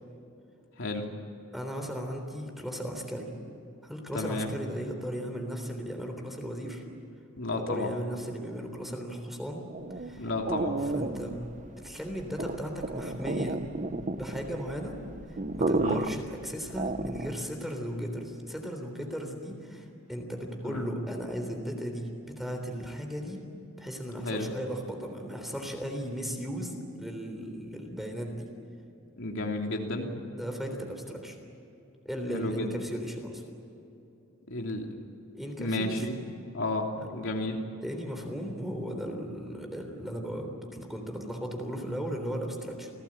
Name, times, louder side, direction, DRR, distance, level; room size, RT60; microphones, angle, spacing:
voice 1, 1.5-3.3 3.8-6.8 7.5-9.6 10.1-10.3 10.9-11.4 11.8-14.9 15.5-22.1 22.4-23.4 23.8-28.5 30.4-31.4 32.1-33.4 35.3-36.1 37.0-37.2 37.8-42.9, equal, ahead, 3 dB, 3.5 m, -36 dB
voice 2, 4.1-4.5 7.4-7.9 10.2-10.8 15.8-16.0 20.6-20.8 24.2-24.5 29.2-30.1 32.3-32.7 34.5-34.9 35.6-36.2 36.5-37.6, left 2 dB, 65° left, 1 dB, 3.1 m, -32 dB
sound 1, 9.7-17.5, right 2 dB, 35° right, 0.9 m, -33 dB
29.0 x 18.0 x 8.9 m, 2.9 s
head